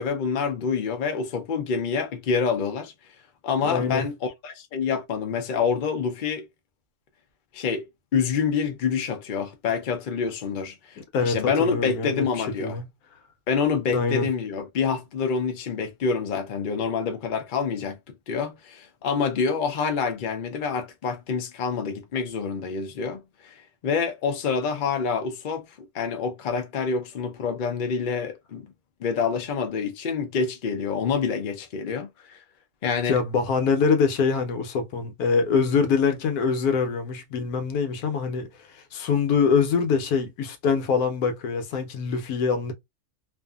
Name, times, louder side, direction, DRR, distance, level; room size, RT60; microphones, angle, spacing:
voice 1, 0.0-2.9 3.4-6.5 7.5-7.8 8.1-12.8 13.5-18.0 18.3-23.5 23.8-25.6 25.9-28.7 29.0-32.4 32.8-33.2, left 5 dB, 60° left, 0.5 m, -27 dB
voice 2, 3.6-4.1 11.0-12.8 13.9-14.3 33.1-42.7, left 5 dB, 80° left, 1.2 m, -24 dB
2.6 x 2.5 x 2.3 m
omnidirectional pair, 1.6 m